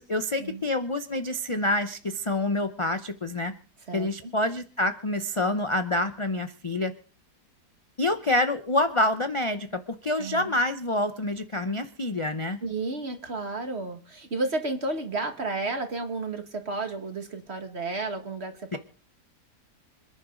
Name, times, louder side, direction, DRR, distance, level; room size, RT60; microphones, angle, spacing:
voice 1, 0.0-3.5 3.9-6.9 8.0-12.6 18.7-18.8, left 1 dB, 35° left, 9 dB, 0.5 m, -27 dB
voice 2, 3.9-4.3 10.2-10.5 12.6-18.8, right 3 dB, 40° right, 6 dB, 2.1 m, -32 dB
27.0 x 10.5 x 3.9 m, 0.41 s
omnidirectional pair, 1.7 m